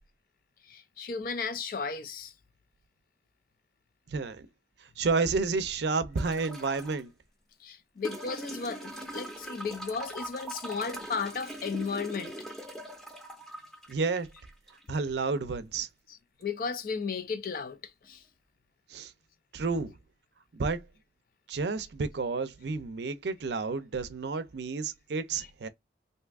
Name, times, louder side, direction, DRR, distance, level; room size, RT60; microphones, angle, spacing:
voice 1, 0.7-2.3 7.6-12.3 16.4-17.8 18.1-18.2, left 5 dB, 50° left, 0.4 m, -34 dB
voice 2, 4.1-4.5 5.0-7.1 13.9-14.3 14.9-15.9 18.9-19.1 19.5-19.9 20.5-20.8 21.5-25.7, right 4 dB, 70° right, 0.5 m, -30 dB
sound 1, 6.2-7.0 8.0-15.0 16.4-16.5, right 1 dB, 5° left, 0.6 m, -42 dB
2.7 x 2.3 x 3.4 m
head